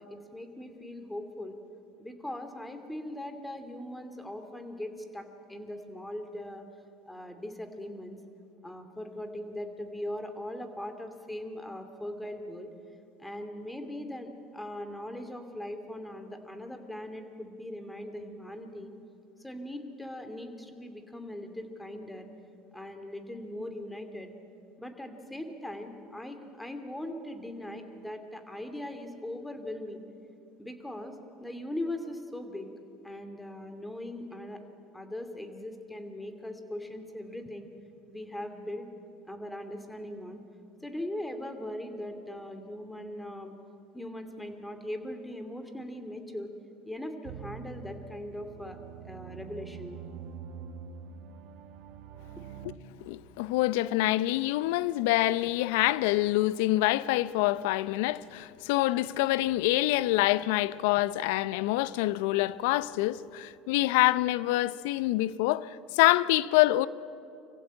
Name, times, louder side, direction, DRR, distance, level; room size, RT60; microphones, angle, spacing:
voice 1, 0.0-1.6 2.0-6.7 7.1-8.2 8.6-12.7 13.2-18.9 19.4-22.3 22.7-24.3 24.8-30.0 30.6-31.2 31.4-32.7 33.0-34.6 34.9-37.7 38.1-38.9 39.3-40.4 40.8-43.6 43.9-46.5 46.9-48.8 49.0-50.0, left 1 dB, 10° left, 2.6 m, -40 dB
sound 1, 47.2-52.8, right 7 dB, 65° right, 1.4 m, -45 dB
voice 2, 53.0-66.9, left 17 dB, 75° left, 0.5 m, -26 dB
24.5 x 15.5 x 8.8 m
hypercardioid pair, 80°, 0 cm